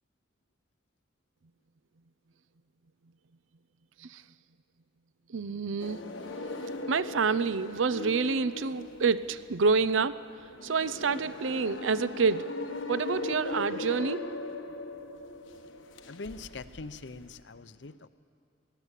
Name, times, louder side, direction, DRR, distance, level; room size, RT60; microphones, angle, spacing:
voice 1, 5.3-6.0 6.9-10.2 10.6-12.5 12.9-14.2, right 4 dB, 85° right, 15 dB, 0.6 m, -28 dB
sound 1, 5.8-17.4, left 2 dB, 90° left, 1.3 m, -39 dB
voice 2, 16.0-18.1, left 3 dB, 65° left, 14 dB, 0.7 m, -43 dB
22.0 x 15.5 x 8.3 m, 2.4 s
head